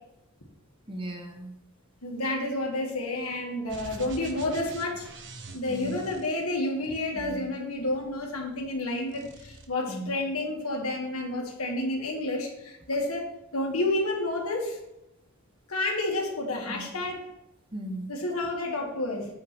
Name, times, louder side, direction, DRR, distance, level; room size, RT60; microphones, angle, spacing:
voice 1, 0.9-1.5 5.7-6.0 7.1-7.5 9.9-10.1 16.7-16.8 17.7-18.1, right 1 dB, 25° right, 4 dB, 1.1 m, -37 dB
voice 2, 2.0-5.1 5.5-13.3 13.5-14.8 15.7-17.2 18.1-19.3, left 2 dB, 75° left, 0 dB, 2.3 m, -30 dB
sound 1, 3.7-7.0 7.7-8.8 9.1-9.7, right 2 dB, 55° right, 1.1 m, -45 dB
8.8 x 4.9 x 6.1 m, 0.89 s
head